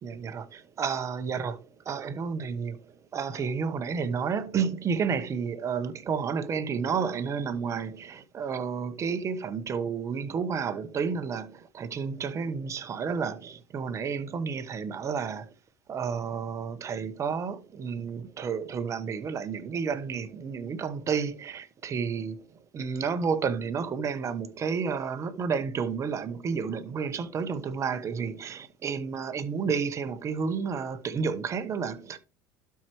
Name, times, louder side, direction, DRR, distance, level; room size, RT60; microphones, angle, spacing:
voice 1, 0.0-15.5 15.9-22.4 22.7-32.2, right 6 dB, 35° right, 1.0 m, -31 dB
12.0 x 4.6 x 3.1 m
supercardioid pair, 115°, 9 cm